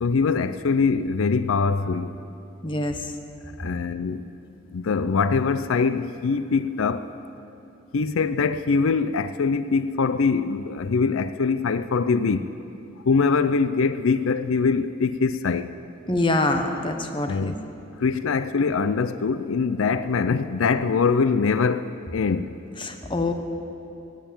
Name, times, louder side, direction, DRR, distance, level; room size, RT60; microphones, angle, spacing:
voice 1, 0.0-2.2 3.6-4.3 4.7-7.1 7.9-12.5 13.1-15.7 17.3-17.5 18.0-22.5, left 4 dB, 85° left, 0.5 m, -23 dB
voice 2, 2.6-3.1 16.1-17.5 22.8-23.3, left 2 dB, 25° left, 1.0 m, -25 dB
17.0 x 9.2 x 8.8 m
head